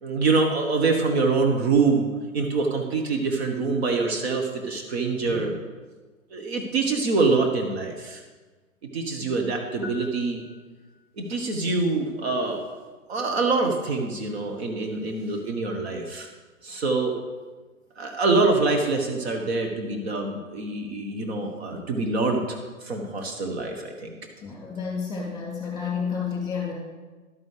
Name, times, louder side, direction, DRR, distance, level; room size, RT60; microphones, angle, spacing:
voice 1, 0.0-2.1 2.3-5.6 6.3-8.2 8.9-10.4 11.2-12.6 13.1-16.3 16.6-17.2 18.0-22.4 22.8-24.1, right 3 dB, 50° right, 3 dB, 1.3 m, -25 dB
sound 1, 9.8-11.3, left 5 dB, 5° right, 1.2 m, -45 dB
voice 2, 24.4-26.7, left 6 dB, 10° left, -3 dB, 2.8 m, -30 dB
11.5 x 9.3 x 3.4 m, 1.3 s
figure-of-eight pair, 120°, 41 cm